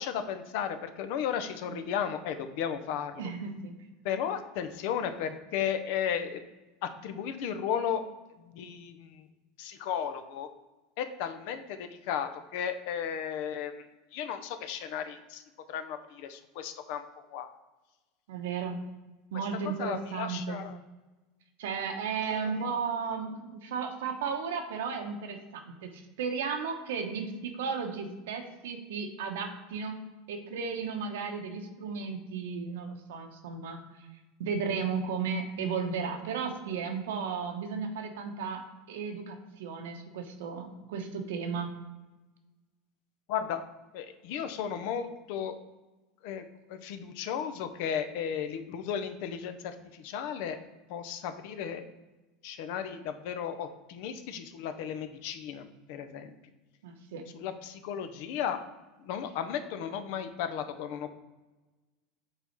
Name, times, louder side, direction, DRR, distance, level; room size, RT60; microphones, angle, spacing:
voice 1, 0.0-3.2 4.0-6.4 6.8-8.0 8.5-9.3 9.6-10.5 11.0-13.7 14.1-15.4 15.7-17.0 17.3-17.5 19.8-20.8 22.2-22.7 43.3-43.6 43.9-45.5 46.2-46.4 46.7-50.6 50.9-51.8 52.4-56.3 57.4-58.6 59.0-61.1, left 8 dB, 65° left, 9 dB, 0.7 m, -34 dB
voice 2, 3.2-3.7 18.3-18.8 19.3-20.6 21.6-29.9 30.3-33.8 34.4-38.6 38.9-41.7 56.8-57.2, right 5 dB, 90° right, 5 dB, 1.0 m, -34 dB
6.7 x 4.1 x 4.5 m, 1.1 s
supercardioid pair, 135°, 0 cm